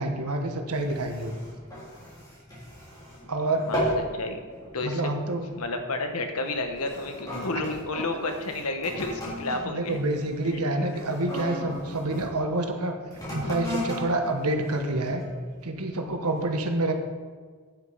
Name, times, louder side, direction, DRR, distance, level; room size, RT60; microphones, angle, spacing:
voice 1, 0.0-1.4 3.3-3.6 4.8-5.4 9.6-12.9 13.3-15.2 15.6-16.9, right 2 dB, 85° right, 4 dB, 1.3 m, -27 dB
sound 1, 0.7-3.3 3.6-4.1 4.5-4.8 5.5-5.7 6.4-12.3 13.0-15.4 16.0-16.1, equal, 15° left, 3.6 m, -35 dB
voice 2, 4.7-5.1 5.6-10.0 10.4-10.9, left 2 dB, 80° left, 6 dB, 1.2 m, -31 dB
9.0 x 8.1 x 5.6 m, 1.5 s
head